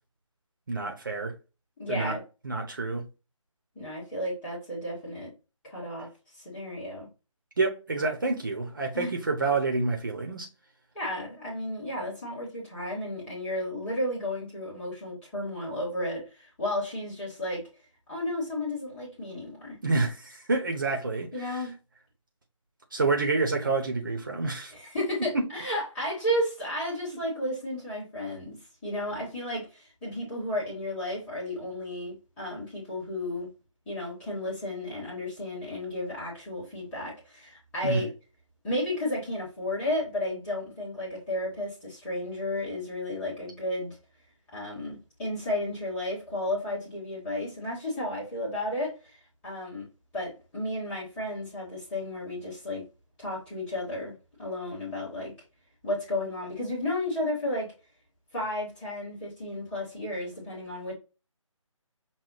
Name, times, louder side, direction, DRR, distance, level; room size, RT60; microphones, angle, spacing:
voice 1, 0.7-1.3 1.9-2.2 2.4-3.1 7.6-10.5 19.8-21.6 22.9-24.7 25.3-25.4 27.1-27.2 37.8-38.0, right 3 dB, 35° right, 0.8 m, -28 dB
voice 2, 1.8-2.2 3.7-5.3 5.6-6.1 6.3-7.1 8.9-9.1 10.9-17.6 18.1-19.8 21.3-21.7 24.7-28.6 28.8-33.5 33.9-38.1 38.6-44.0 44.5-49.2 49.4-49.8 50.1-52.8 53.2-54.1 54.4-55.3 55.8-57.7 58.3-60.9, left 1 dB, 5° left, 1.2 m, -33 dB
5.9 x 2.2 x 3.9 m
figure-of-eight pair, 155°, 17 cm